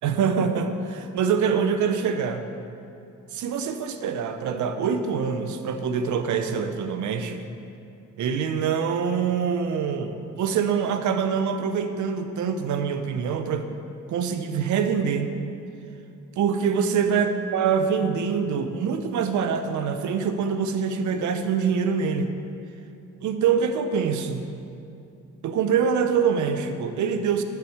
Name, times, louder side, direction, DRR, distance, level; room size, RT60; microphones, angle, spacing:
voice 1, 0.0-2.4 3.3-7.4 8.2-13.7 14.1-15.3 16.4-22.3 23.2-24.5 25.4-27.4, right 6 dB, 70° right, 8 dB, 0.8 m, -25 dB
10.5 x 4.7 x 7.1 m, 2.7 s
cardioid pair, 90°, 30 cm